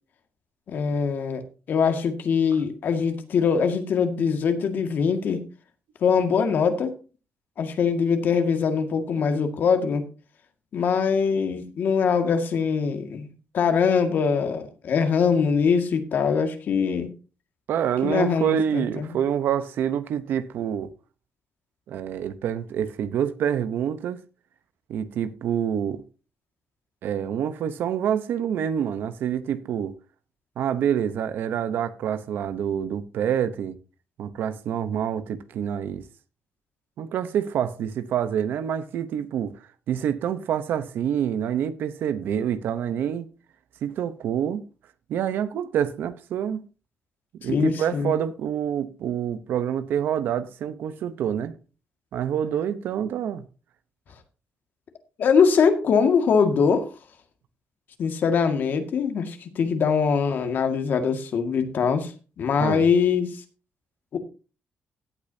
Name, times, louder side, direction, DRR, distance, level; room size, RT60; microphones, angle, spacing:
voice 1, 0.7-1.4 1.7-5.4 6.0-6.9 7.6-10.0 10.7-17.1 18.0-19.1 47.4-48.1 55.2-56.9 58.0-62.1 62.4-63.3 64.1-64.2, left 6 dB, 65° left, 1.9 m, -22 dB
voice 2, 17.7-20.9 21.9-24.2 24.9-26.0 27.0-30.0 30.6-33.8 34.2-36.0 37.0-39.6 39.9-43.3 43.8-44.6 45.1-46.6 47.4-51.5 52.1-53.4 62.6-62.8, right 9 dB, 85° right, 0.9 m, -27 dB
16.5 x 8.6 x 2.8 m
cardioid pair, 110°, 3 cm